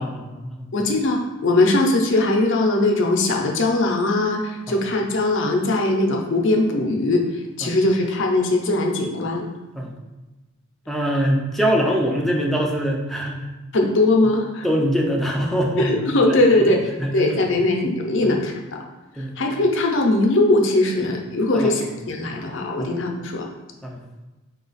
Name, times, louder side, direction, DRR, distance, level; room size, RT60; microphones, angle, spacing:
voice 1, 0.0-0.7 4.7-4.8 7.6-7.7 9.7-10.0 10.9-13.5 14.2-14.3 14.6-16.0 16.2-16.7 17.0-17.5 18.2-18.3 19.2-19.3 21.5-21.7 22.8-22.9 23.8-24.1, equal, ahead, -1 dB, 0.5 m, -24 dB
voice 2, 0.7-7.2 7.6-9.4 13.7-14.7 15.8-18.5 19.4-23.5, left 2 dB, 65° left, 2 dB, 0.6 m, -20 dB
4.3 x 2.4 x 3.9 m, 1.1 s
head